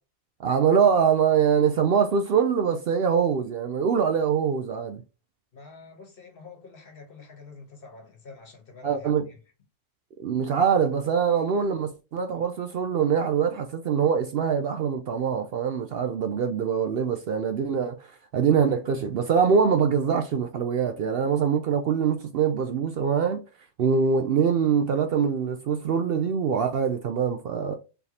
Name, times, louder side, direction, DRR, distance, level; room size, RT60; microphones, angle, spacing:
voice 1, 0.4-5.0 8.8-9.3 10.2-23.4 23.8-27.8, right 7 dB, 65° right, 0.7 m, -24 dB
voice 2, 5.5-9.4, left 4 dB, 50° left, 1.3 m, -47 dB
4.6 x 3.3 x 2.7 m
omnidirectional pair, 1.3 m